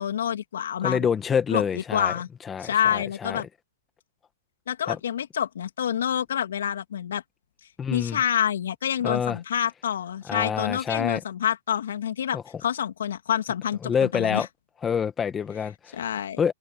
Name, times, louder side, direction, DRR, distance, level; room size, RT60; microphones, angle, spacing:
voice 1, 0.0-1.1 1.5-2.3 2.6-3.5 4.7-7.2 7.9-14.5 15.9-16.4, left 9 dB, 75° left, 2.9 m, -27 dB
voice 2, 0.8-2.1 2.5-3.4 4.9-5.0 7.8-8.2 9.0-9.4 10.3-11.2 12.3-12.4 13.8-14.5 14.8-15.7 16.4-16.5, left 7 dB, 15° left, 1.7 m, -26 dB
hypercardioid pair, 130°, 0 cm